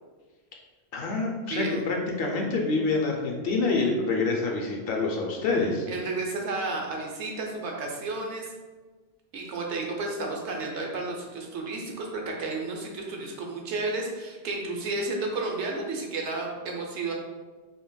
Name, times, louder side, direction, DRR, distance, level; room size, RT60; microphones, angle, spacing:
voice 1, 0.9-5.9, left 3 dB, 65° left, 0 dB, 0.7 m, -27 dB
voice 2, 1.5-1.8 5.9-8.5 9.3-17.1, right 3 dB, 85° right, 0 dB, 1.0 m, -32 dB
5.2 x 2.1 x 2.2 m, 1.3 s
omnidirectional pair, 1.1 m